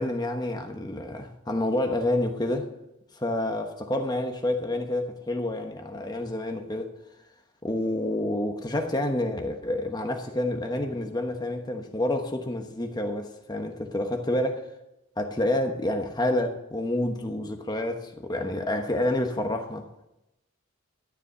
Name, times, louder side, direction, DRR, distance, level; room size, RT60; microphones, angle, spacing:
voice 1, 0.0-2.7 3.1-6.9 7.6-14.7 15.2-20.1, left 1 dB, 20° left, 1.1 m, -28 dB
12.5 x 7.2 x 6.9 m
head